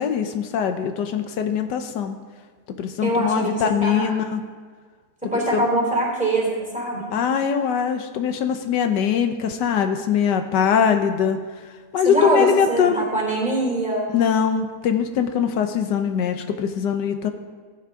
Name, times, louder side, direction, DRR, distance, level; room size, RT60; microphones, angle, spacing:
voice 1, 0.0-2.2 2.8-4.5 5.3-5.6 7.1-11.4 11.9-13.0 14.1-17.3, left 7 dB, 90° left, 6 dB, 1.4 m, -22 dB
voice 2, 3.0-4.3 5.2-7.1 12.0-14.1, right 2 dB, 5° right, -5 dB, 3.6 m, -23 dB
16.5 x 9.3 x 3.7 m, 1.5 s
omnidirectional pair, 1.8 m